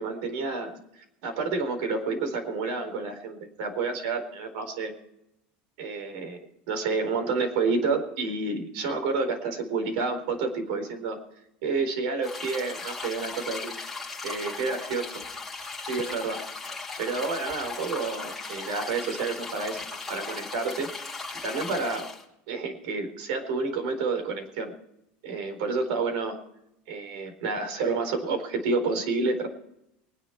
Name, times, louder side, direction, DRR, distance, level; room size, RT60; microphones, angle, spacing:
voice 1, 0.0-4.9 5.8-6.4 6.7-11.2 11.6-13.7 14.2-15.2 15.9-16.4 17.0-20.9 21.4-22.0 22.5-24.7 25.2-26.4 26.9-29.5, right 4 dB, 75° right, 6 dB, 4.2 m, -29 dB
sound 1, 12.2-22.2, left 3 dB, 5° left, 2.8 m, -37 dB
24.0 x 10.5 x 4.6 m, 0.81 s
cardioid pair, 155°, 5 cm